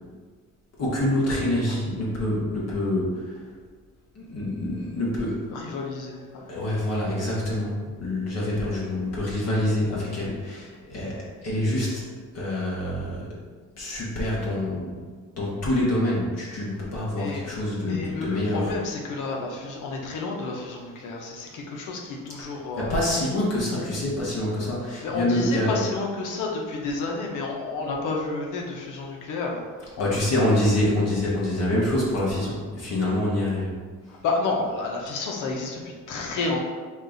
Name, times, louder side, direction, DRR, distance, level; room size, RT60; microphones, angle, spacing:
voice 1, 0.8-3.4 4.1-5.5 6.5-12.1 12.3-13.3 13.8-15.0 15.4-18.7 22.8-25.7 30.0-33.8 34.1-34.2, left 1 dB, 55° left, -5 dB, 1.4 m, -26 dB
voice 2, 5.5-6.6 17.1-17.5 17.8-23.0 25.0-30.2 34.1-36.6, left 3 dB, 90° left, 0 dB, 0.9 m, -31 dB
5.3 x 2.5 x 3.9 m, 1.5 s
cardioid pair, 90°, 30 cm